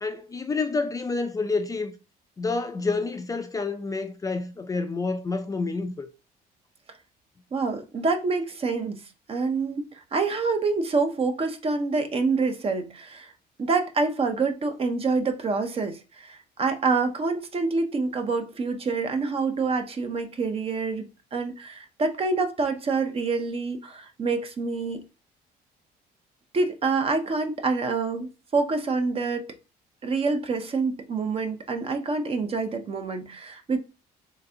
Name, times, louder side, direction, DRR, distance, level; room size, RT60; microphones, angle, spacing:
voice 1, 0.0-1.9 2.4-6.1, left 3 dB, 20° left, 0.4 m, -28 dB
voice 2, 7.5-9.0 9.3-13.3 13.6-25.0 26.5-29.5 30.0-33.8, right 4 dB, 35° right, 0.7 m, -27 dB
3.8 x 3.4 x 2.8 m
cardioid pair, 110°, 17 cm